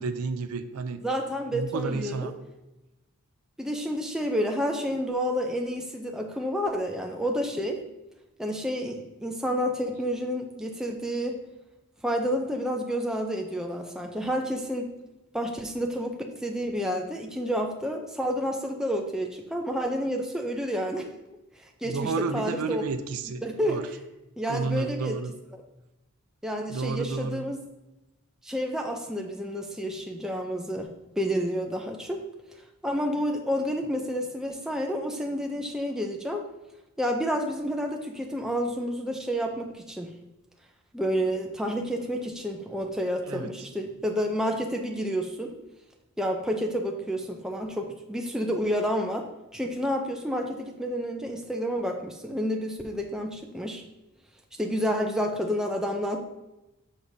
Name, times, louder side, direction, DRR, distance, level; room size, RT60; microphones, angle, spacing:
voice 1, 0.0-1.0 1.5-2.3 21.8-23.9 24.5-25.3 26.7-27.4 43.3-43.5, right 4 dB, 85° right, 9 dB, 0.5 m, -31 dB
voice 2, 1.0-2.3 3.6-7.8 8.4-11.4 12.0-14.9 15.3-21.1 21.8-22.8 23.4-23.8 24.4-25.2 26.4-27.6 28.4-30.9 31.2-32.2 32.8-36.4 37.0-40.1 40.9-45.5 46.2-49.3 49.5-53.8 54.6-56.2, equal, 5° right, 1 dB, 0.5 m, -29 dB
6.8 x 6.1 x 2.7 m, 0.97 s
head